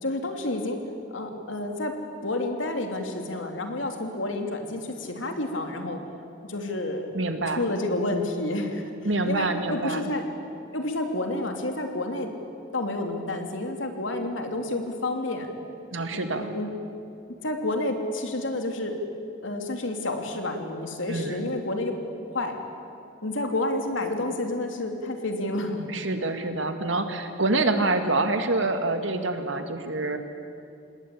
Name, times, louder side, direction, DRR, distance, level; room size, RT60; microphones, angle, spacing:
voice 1, 0.0-0.8 1.1-2.0 2.2-6.1 6.4-7.1 7.5-8.9 9.2-10.2 10.7-12.3 12.7-15.5 16.1-16.7 17.4-19.0 19.4-21.9 22.3-22.5 23.2-25.9, left 2 dB, 85° left, 4 dB, 3.0 m, -29 dB
voice 2, 7.1-7.6 9.0-10.0 15.9-16.5 21.1-21.5 25.9-30.2, right 2 dB, 80° right, 7 dB, 2.1 m, -26 dB
27.0 x 20.5 x 8.5 m, 2.6 s
head